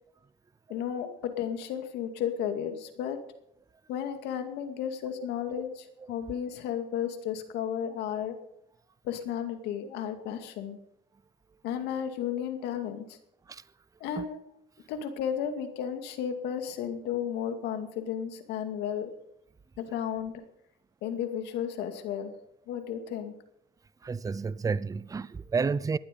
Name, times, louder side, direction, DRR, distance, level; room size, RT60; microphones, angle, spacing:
voice 1, 0.7-3.2 3.9-8.3 9.0-10.8 11.6-13.2 14.0-14.4 14.9-19.1 19.8-20.4 21.0-22.3 22.7-23.3, left 9 dB, 90° left, 2.3 m, -33 dB
voice 2, 24.0-26.0, right 5 dB, 20° right, 0.6 m, -31 dB
19.0 x 12.0 x 5.4 m
cardioid pair, 110°, 17 cm